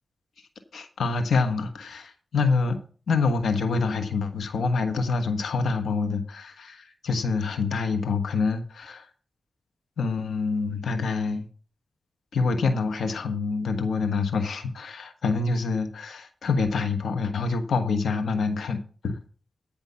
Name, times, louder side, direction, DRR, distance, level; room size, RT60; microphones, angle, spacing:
voice 1, 0.7-9.1 10.0-11.5 12.3-19.2, left 4 dB, 90° left, 8 dB, 1.3 m, -26 dB
15.0 x 5.3 x 5.6 m, 0.39 s
cardioid pair, 50°, 0 cm